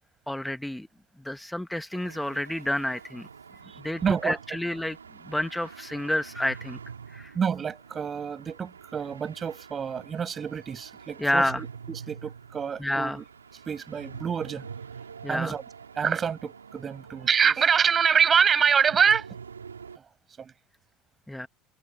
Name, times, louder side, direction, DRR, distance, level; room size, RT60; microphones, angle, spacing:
voice 1, 0.3-0.9 1.2-3.3 3.8-5.0 5.3-6.8 7.1-7.3 11.2-11.6 12.8-13.2 15.2-15.5 21.3-21.5, left 1 dB, 5° left, 1.6 m, -29 dB
sound 1, 1.9-20.0, right 6 dB, 80° right, 4.5 m, -46 dB
voice 2, 3.7-4.4 7.3-13.2 13.7-14.7 15.3-15.6 16.0-19.3 20.4-20.5, right 7 dB, 30° right, 8.0 m, -26 dB
open air
figure-of-eight pair, 65°, 0 cm